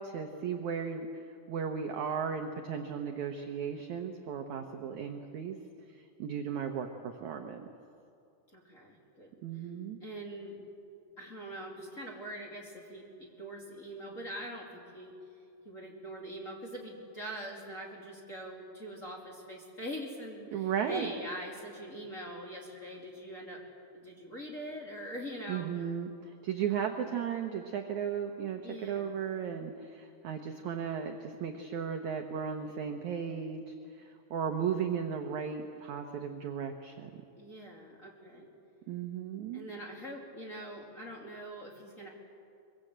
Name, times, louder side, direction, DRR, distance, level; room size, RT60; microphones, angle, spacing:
voice 1, 0.0-5.6 5.9-7.7 9.4-10.0 20.5-21.1 25.5-37.1 38.9-39.6, right 7 dB, 75° right, 4 dB, 1.7 m, -36 dB
voice 2, 8.5-9.6 10.0-10.6 11.2-15.2 15.6-23.6 23.9-25.9 28.6-29.3 37.4-38.5 39.5-42.1, equal, 25° left, -2 dB, 2.3 m, -43 dB
23.5 x 23.0 x 8.0 m, 2.5 s
omnidirectional pair, 4.9 m